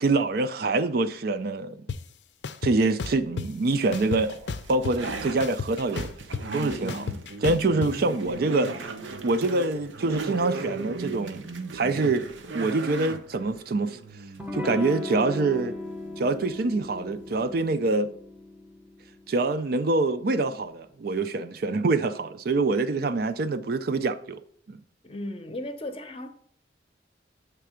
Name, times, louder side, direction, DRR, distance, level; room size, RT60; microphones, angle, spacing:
voice 1, 0.0-1.8 2.6-4.4 4.7-6.1 6.5-7.1 7.4-8.7 9.2-11.4 11.7-12.3 12.5-14.0 14.5-15.8 16.2-18.1 19.3-24.4 24.7-24.8, right 3 dB, 55° right, 0.4 m, -25 dB
sound 1, 1.9-2.0 2.4-3.5 3.9-5.1 5.4-7.9, left 5 dB, 65° left, 0.5 m, -32 dB
sound 2, 3.7-17.7, right 2 dB, 85° right, 0.8 m, -38 dB
Electric guitar / Strum, 14.4-19.8, left 2 dB, 10° right, 0.7 m, -37 dB
voice 2, 25.0-26.3, left 1 dB, 30° left, 0.7 m, -35 dB
8.3 x 3.4 x 4.9 m
head